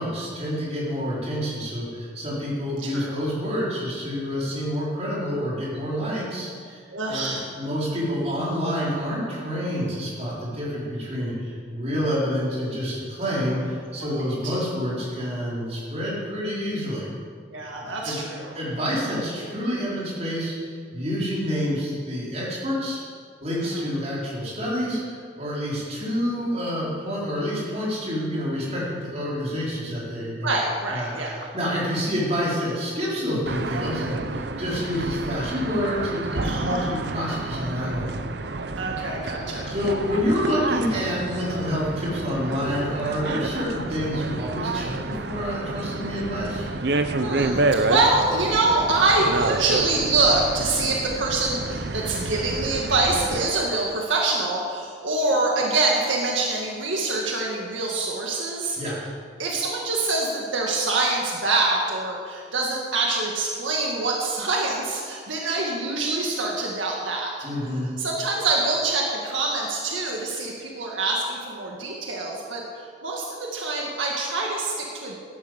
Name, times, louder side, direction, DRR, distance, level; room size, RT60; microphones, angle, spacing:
voice 1, 0.0-6.8 7.1-17.1 18.0-18.2 18.5-23.0 23.4-30.5 30.9-31.1 31.5-38.1 39.7-46.7 58.8-59.0 67.4-67.9, equal, 35° right, -7 dB, 5.0 m, -28 dB
voice 2, 2.8-3.2 6.9-7.5 14.0-14.1 14.4-14.6 17.5-18.5 23.7-23.8 30.4-31.5 36.4-36.9 38.8-39.7 47.2-58.8 59.4-67.3 68.0-75.2, right 3 dB, 80° right, -2 dB, 1.9 m, -25 dB
sound 1, 33.5-53.5, right 2 dB, 60° right, 0.8 m, -29 dB
12.5 x 11.0 x 8.0 m, 2.1 s
head